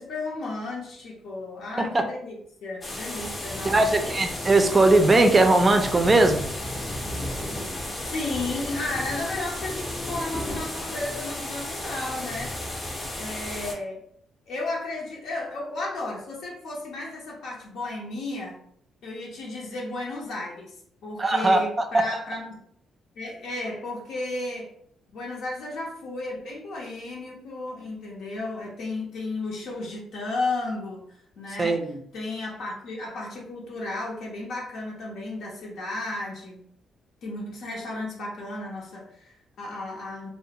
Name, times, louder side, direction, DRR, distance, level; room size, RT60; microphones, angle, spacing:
voice 1, 0.0-4.0 8.0-12.6 13.2-14.0 14.5-18.6 19.0-20.8 21.0-22.6 23.2-24.7 25.1-31.0 31.4-31.8 32.1-36.6 37.2-40.3, left 2 dB, 70° left, -3 dB, 0.7 m, -33 dB
sound 1, 2.8-13.7, left 1 dB, 25° left, 0.6 m, -33 dB
voice 2, 3.6-6.5 21.2-21.6 31.6-32.0, right 2 dB, 25° right, 6 dB, 0.4 m, -19 dB
2.4 x 2.0 x 2.8 m, 0.66 s
cardioid pair, 90°, 0 cm